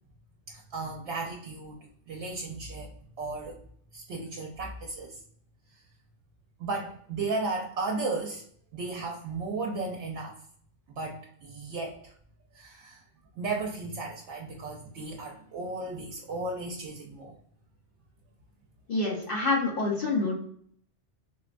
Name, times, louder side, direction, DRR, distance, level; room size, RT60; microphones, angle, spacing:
voice 1, 0.5-3.6 3.9-5.2 6.6-8.4 8.7-10.4 10.9-12.1 12.5-13.0 13.4-17.3, right 3 dB, 75° right, -1 dB, 0.9 m, -35 dB
voice 2, 18.9-20.4, left 3 dB, 55° left, -4 dB, 0.9 m, -27 dB
4.0 x 2.2 x 2.4 m, 0.62 s
omnidirectional pair, 1.2 m